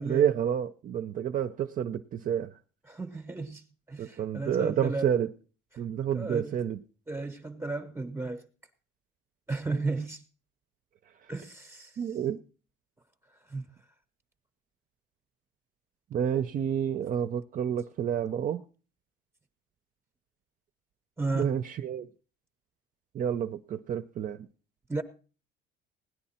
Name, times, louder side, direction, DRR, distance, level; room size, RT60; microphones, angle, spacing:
voice 1, 0.0-2.6 4.0-5.3 5.8-6.8 12.0-12.4 16.1-18.6 21.3-22.1 23.1-24.5, right 9 dB, 40° right, 0.5 m, -29 dB
voice 2, 2.9-5.1 6.1-6.6 7.1-8.4 9.5-10.2 11.3-12.0 13.5-13.6 21.2-21.5 24.9-25.0, right 3 dB, 10° right, 0.8 m, -34 dB
17.5 x 9.9 x 4.3 m
cardioid pair, 135°, 20 cm